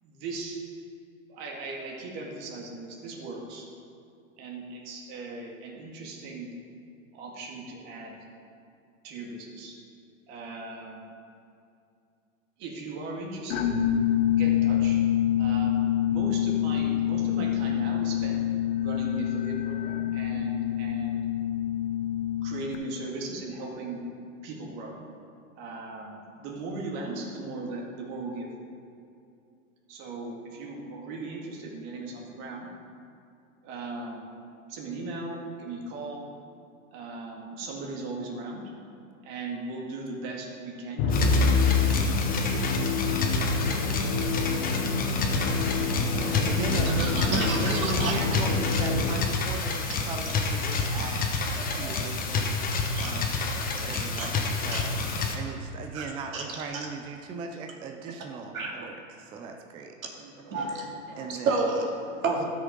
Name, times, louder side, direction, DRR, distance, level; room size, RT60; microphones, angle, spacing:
voice 1, 0.0-0.6 1.3-3.7 4.4-6.5 7.1-8.2 9.0-9.8 10.3-11.0 12.6-13.8 14.3-15.0 15.4-18.4 18.8-21.3 22.4-24.0 24.4-25.0 25.6-28.5 29.9-32.7 33.6-34.3 34.7-36.3 36.9-38.6 39.2-41.5 60.2-60.3, right 3 dB, 45° right, -1 dB, 2.4 m, -38 dB
sound 1, 13.5-22.8, left 11 dB, 70° left, 1.2 m, -26 dB
Musical instrument, 41.0-49.5, left 3 dB, 50° left, 1.5 m, -27 dB
sound 2, 41.1-55.4, left 4 dB, 20° left, 1.2 m, -29 dB
voice 2, 46.1-52.5 53.0-55.0 55.3-60.0 61.2-61.7 62.4-62.5, right 5 dB, 15° right, 4 dB, 0.4 m, -38 dB
voice 3, 47.0-48.1 51.8-51.9 52.9-53.1 54.2-54.3 54.7-55.2 55.9-56.0 56.3-56.4 58.5-58.9 60.5-62.4, right 3 dB, 85° right, -1 dB, 2.4 m, -31 dB
13.0 x 6.4 x 5.2 m, 2.5 s
hypercardioid pair, 120°, 41 cm